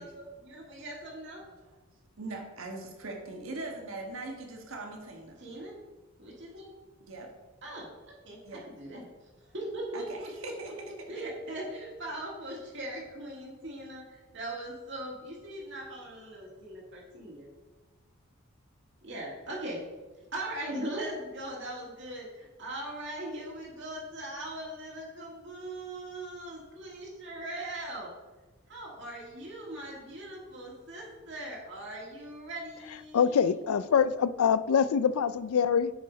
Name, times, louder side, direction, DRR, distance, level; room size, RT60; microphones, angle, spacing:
voice 1, 0.0-1.4 5.4-5.7 6.2-6.7 7.6-7.9 8.2-10.5 11.1-17.5 19.0-19.8 20.3-28.1 28.7-33.5, right 1 dB, 55° right, -3 dB, 1.9 m, -40 dB
voice 2, 2.2-5.4 7.1-7.3 8.4-8.7 9.9-10.7, right 2 dB, 70° right, 2 dB, 1.5 m, -40 dB
voice 3, 33.1-35.9, left 7 dB, 85° left, 16 dB, 0.4 m, -25 dB
8.9 x 4.9 x 5.0 m, 1.2 s
head